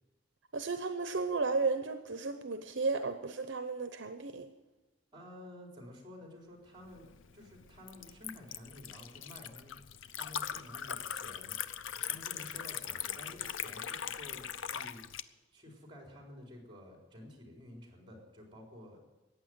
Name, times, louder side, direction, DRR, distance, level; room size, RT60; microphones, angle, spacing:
voice 1, 0.5-4.5, right 4 dB, 65° right, 8 dB, 0.8 m, -34 dB
voice 2, 5.1-7.1 7.3-9.8 10.1-11.5 12.1-19.0, left 1 dB, 25° right, 1 dB, 4.0 m, -52 dB
Liquid, 6.8-15.2, left 9 dB, 85° left, 0.6 m, -41 dB
14.5 x 9.4 x 9.3 m, 1.2 s
head